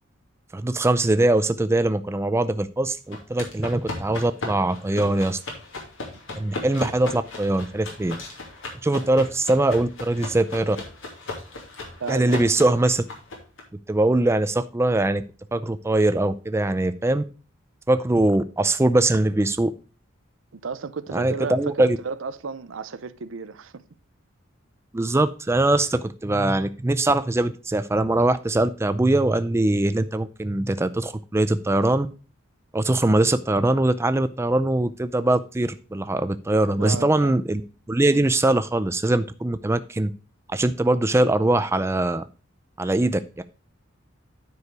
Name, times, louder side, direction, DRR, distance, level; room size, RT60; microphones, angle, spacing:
voice 1, 0.5-5.4 6.4-8.2 8.8-10.8 12.1-13.0 13.9-15.2 15.5-17.2 17.9-19.7 21.1-22.0 24.9-32.1 32.7-37.6 37.9-40.1 40.5-42.2 42.8-43.4, right 2 dB, 15° right, 0.4 m, -22 dB
sound 1, 3.1-13.6, left 2 dB, 85° left, 2.7 m, -36 dB
voice 2, 12.0-12.6 20.5-23.8 36.8-37.4, right 5 dB, 80° right, 0.6 m, -33 dB
9.6 x 4.8 x 4.6 m
head